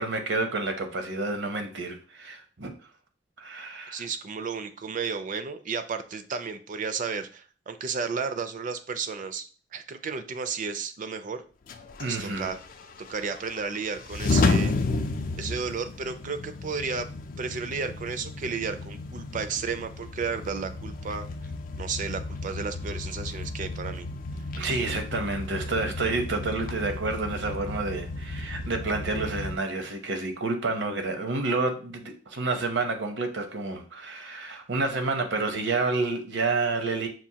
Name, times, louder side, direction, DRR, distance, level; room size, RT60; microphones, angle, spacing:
voice 1, 0.0-2.7 3.4-4.0 12.0-12.5 24.6-37.1, right 3 dB, 75° right, 5 dB, 0.8 m, -29 dB
voice 2, 3.9-11.4 12.0-12.6 13.1-14.8 15.4-17.1 17.4-21.3 21.8-24.1 24.6-24.8, right 5 dB, 45° right, 9 dB, 0.4 m, -33 dB
sound 1, 11.7-29.6, left 3 dB, 50° left, 0.4 m, -32 dB
6.0 x 2.5 x 2.8 m, 0.38 s
head